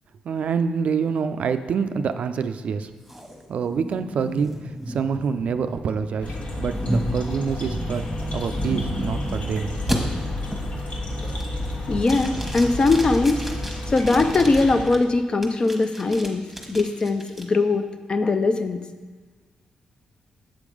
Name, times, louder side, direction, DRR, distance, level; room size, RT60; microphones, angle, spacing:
voice 1, 0.2-2.9 3.5-8.1 8.3-9.7, right 6 dB, 65° right, 9 dB, 0.3 m, -26 dB
sound 1, 3.1-9.4 9.9-10.0 10.5-10.8 11.2-11.7 12.0-15.0 15.4-17.4, right 1 dB, 5° right, 1.2 m, -32 dB
sound 2, 6.2-14.8, left 1 dB, 60° left, 1.2 m, -31 dB
voice 2, 11.9-13.4 13.9-18.8, left 3 dB, 40° left, 8 dB, 0.5 m, -21 dB
7.5 x 3.5 x 4.9 m, 1.4 s
supercardioid pair, 60°, 2 cm